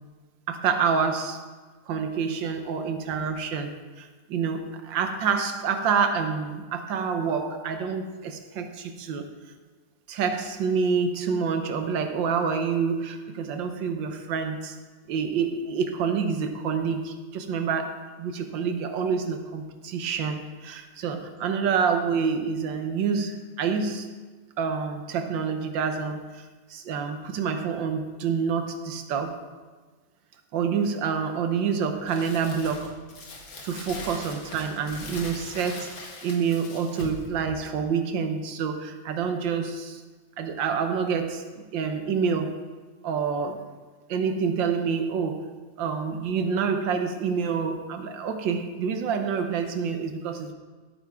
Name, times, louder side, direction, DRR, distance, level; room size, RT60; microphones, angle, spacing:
voice 1, 0.5-1.4 1.9-9.3 10.1-14.8 15.1-24.1 24.6-29.4 30.5-32.9 33.6-40.0 40.4-42.7 43.0-43.6 44.1-50.5, right 6 dB, 85° right, 6 dB, 1.6 m, -27 dB
Crumpling crinkling, 32.1-37.3, left 2 dB, 65° left, 2.3 m, -41 dB
15.5 x 9.1 x 3.6 m, 1.4 s
omnidirectional pair, 2.0 m